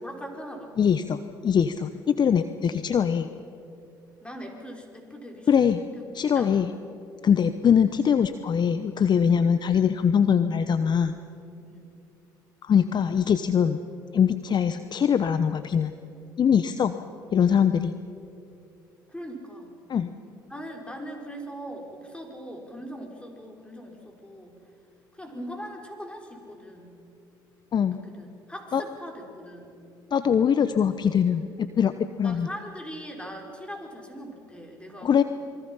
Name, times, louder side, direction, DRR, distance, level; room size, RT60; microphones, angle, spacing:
voice 1, 0.0-0.7 4.2-5.5 6.3-6.7 7.3-7.5 11.6-11.9 19.1-19.7 20.5-24.6 25.1-27.0 27.8-29.8 32.2-35.2, equal, 10° left, 1 dB, 5.7 m, -40 dB
voice 2, 0.8-3.3 5.5-5.8 6.1-6.7 7.2-11.1 12.6-13.9 14.1-15.9 16.4-16.9 17.3-17.9 19.9-20.1 27.7-28.0 28.7-28.8 30.1-31.9 32.2-32.5 35.0-35.2, left 7 dB, 40° left, 11 dB, 0.9 m, -22 dB
27.0 x 23.5 x 5.7 m, 2.6 s
hypercardioid pair, 60°, 11 cm